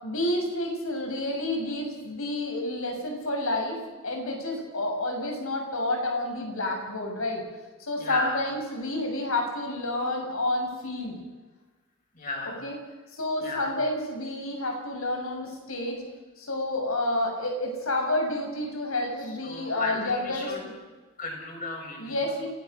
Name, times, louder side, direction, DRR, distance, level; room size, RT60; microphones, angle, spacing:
voice 1, 0.0-3.8 4.0-7.4 7.8-11.2 12.6-12.8 13.1-16.0 16.4-20.7 22.0-22.5, left 1 dB, 75° left, 2 dB, 6.4 m, -29 dB
voice 2, 8.0-8.4 12.1-12.6 13.4-13.7 19.4-20.6 21.2-22.2, left 2 dB, 40° left, 0 dB, 6.6 m, -34 dB
28.0 x 18.0 x 6.5 m, 1.2 s
head